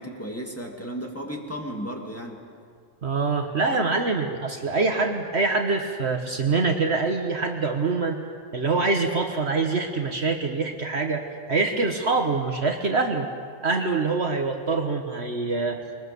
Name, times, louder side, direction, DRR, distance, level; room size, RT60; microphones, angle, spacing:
voice 1, 0.0-2.4 3.7-3.9, equal, 10° left, 0 dB, 2.3 m, -34 dB
voice 2, 3.0-8.2 8.5-13.3 13.6-15.8, right 3 dB, 55° right, 4 dB, 1.4 m, -25 dB
22.5 x 21.0 x 6.9 m, 2.2 s
omnidirectional pair, 1.4 m